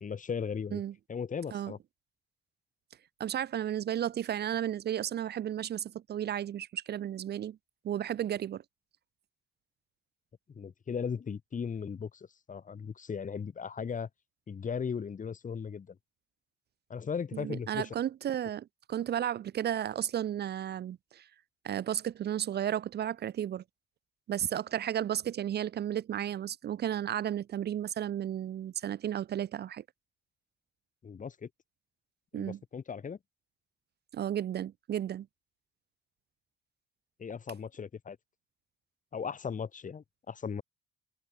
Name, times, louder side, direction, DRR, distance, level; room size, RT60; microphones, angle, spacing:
voice 1, 0.0-0.8 1.1-1.8 10.6-14.1 14.5-16.0 16.9-17.9 31.0-31.5 32.3-33.2 37.2-38.2 39.1-40.6, left 6 dB, 40° left, 2.1 m, -37 dB
voice 2, 3.2-7.6 7.8-8.6 17.3-21.3 21.6-23.6 24.3-29.8 32.3-32.6 34.1-35.3, right 10 dB, 55° right, 0.7 m, -33 dB
cardioid pair, 90°, 20 cm